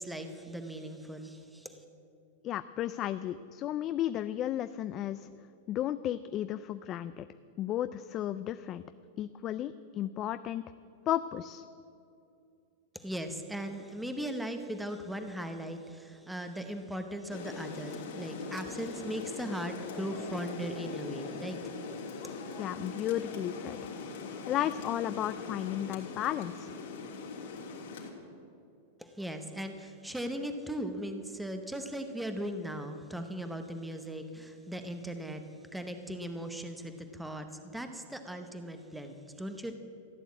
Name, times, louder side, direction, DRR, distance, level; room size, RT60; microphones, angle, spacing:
voice 1, 0.0-1.8 12.9-21.6 29.0-35.5 35.7-39.7, right 1 dB, 5° right, 6 dB, 0.8 m, -38 dB
voice 2, 2.4-5.3 5.7-7.3 7.6-8.8 9.2-10.6 11.1-11.6 22.6-23.8 24.5-26.7, left 12 dB, 30° left, 12 dB, 0.4 m, -33 dB
Rain, 17.3-28.1, left 4 dB, 75° left, 3.0 m, -41 dB
15.5 x 9.3 x 8.4 m, 2.6 s
supercardioid pair, 150°, 0 cm